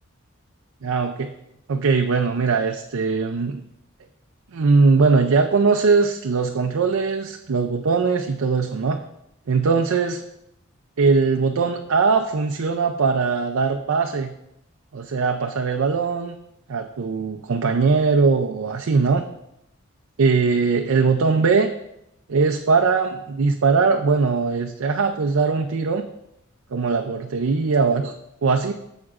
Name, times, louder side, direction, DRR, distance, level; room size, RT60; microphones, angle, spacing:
voice 1, 0.8-1.3 1.7-3.6 4.5-9.0 9.5-10.2 11.0-14.3 14.9-16.4 16.7-19.2 20.2-21.7 22.3-26.1 26.7-28.1 28.4-28.7, right 4 dB, 70° right, 4 dB, 0.5 m, -20 dB
11.0 x 7.3 x 2.5 m, 0.82 s
head